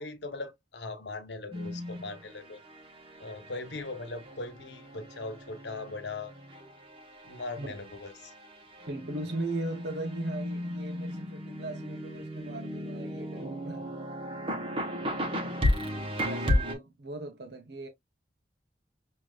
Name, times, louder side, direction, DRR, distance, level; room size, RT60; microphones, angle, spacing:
voice 1, 0.0-2.6 3.2-6.3 7.2-8.3, left 3 dB, 80° left, 1.1 m, -39 dB
sound 1, 1.5-16.8, left 1 dB, 30° right, 1.1 m, -35 dB
voice 2, 8.9-13.9 16.2-17.9, right 2 dB, 70° right, 0.8 m, -38 dB
6.4 x 2.8 x 2.4 m
head